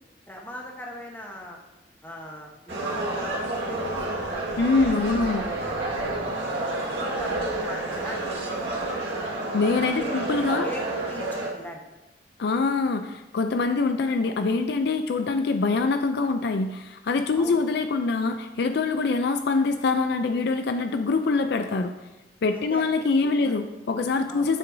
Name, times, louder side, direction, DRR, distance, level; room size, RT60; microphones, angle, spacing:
voice 1, 0.3-1.6 2.0-6.2 6.8-8.8 9.9-10.3 10.6-11.8 17.4-17.6 22.5-22.9 23.2-23.5 24.3-24.5, equal, 10° left, 0 dB, 1.1 m, -40 dB
sound 1, 2.7-11.5, right 2 dB, 75° right, 1.8 m, -30 dB
voice 2, 4.6-5.4 9.5-10.7 12.4-21.9 22.4-24.6, left 4 dB, 60° left, 7 dB, 0.4 m, -24 dB
9.1 x 7.5 x 2.7 m, 1.0 s
head